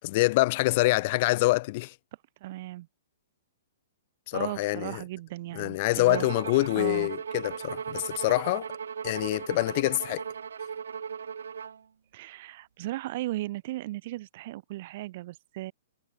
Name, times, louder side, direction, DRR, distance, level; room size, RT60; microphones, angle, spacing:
voice 1, 0.0-1.9 4.3-5.0 5.5-8.7 9.0-10.2, left 21 dB, 25° left, 1.6 m, -26 dB
voice 2, 2.4-2.9 4.3-6.3 6.7-7.1 12.1-15.7, right 16 dB, 30° right, 6.1 m, -36 dB
Bowed string instrument, 6.1-11.8, right 7 dB, 80° right, 4.8 m, -37 dB
hypercardioid pair, 180°, 0 cm